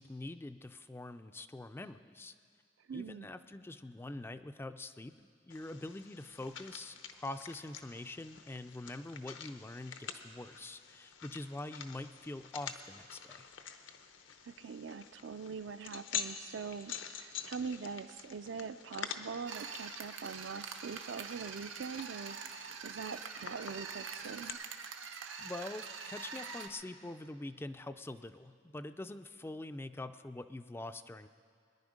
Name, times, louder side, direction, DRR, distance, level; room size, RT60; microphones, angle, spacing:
voice 1, 0.0-2.4 2.9-5.1 5.4-13.5 25.4-31.3, left 2 dB, 10° left, 10 dB, 0.3 m, -44 dB
voice 2, 2.9-3.3 14.4-24.6, right 5 dB, 70° right, 12 dB, 0.4 m, -43 dB
sound 1, 5.5-24.5, left 7 dB, 75° left, 0.8 m, -47 dB
sound 2, 19.5-26.7, right 6 dB, 90° right, 1.0 m, -45 dB
22.5 x 10.5 x 5.0 m, 2.2 s
head